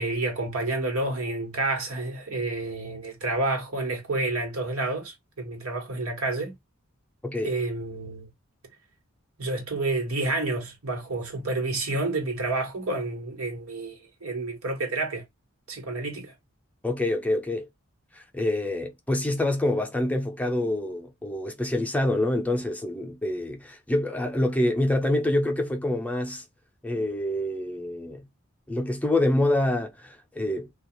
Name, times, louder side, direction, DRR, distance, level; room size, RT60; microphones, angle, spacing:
voice 1, 0.0-6.5 7.4-8.3 9.4-15.2 15.7-16.3, right 2 dB, 85° right, 1.1 m, -29 dB
voice 2, 7.2-7.5 16.8-17.7 18.1-26.4 26.8-28.2 28.7-30.7, left 1 dB, 5° left, 0.5 m, -26 dB
2.4 x 2.3 x 2.9 m
head